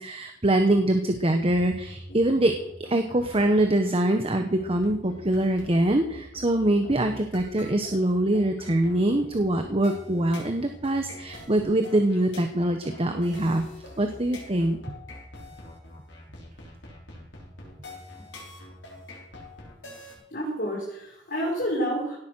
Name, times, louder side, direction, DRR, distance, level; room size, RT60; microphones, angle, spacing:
voice 1, 0.0-2.5 2.9-13.7 14.0-14.8, right 1 dB, 30° right, 6 dB, 1.2 m, -24 dB
sound 1, 1.4-20.2, left 1 dB, 90° left, 6.2 m, -44 dB
voice 2, 20.3-22.2, equal, 55° left, -5 dB, 5.3 m, -29 dB
17.5 x 8.5 x 6.4 m, 0.76 s
head